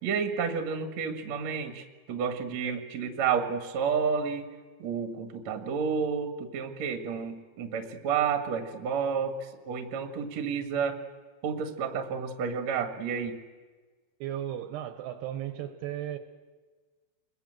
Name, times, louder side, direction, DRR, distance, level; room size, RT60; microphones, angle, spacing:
voice 1, 0.0-4.5 4.8-11.0 11.4-13.4, right 6 dB, 50° right, 7 dB, 2.3 m, -30 dB
voice 2, 14.2-16.2, right 11 dB, 75° right, 9 dB, 3.0 m, -35 dB
27.5 x 22.0 x 7.8 m, 1.4 s
omnidirectional pair, 5.2 m